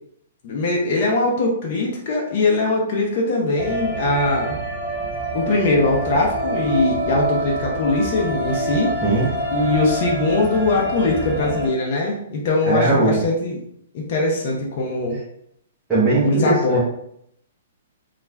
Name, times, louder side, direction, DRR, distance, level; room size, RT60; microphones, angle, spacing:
voice 1, 0.4-4.6 5.3-8.9 9.5-13.6 13.9-15.2 16.2-16.8, left 2 dB, 40° left, -2 dB, 0.5 m, -21 dB
sound 1, 3.6-11.7, right 2 dB, 5° left, 1.2 m, -26 dB
voice 2, 12.6-13.2 15.9-16.8, right 2 dB, 10° right, -11 dB, 0.6 m, -19 dB
2.3 x 2.2 x 3.2 m, 0.73 s
hypercardioid pair, 165°, 0 cm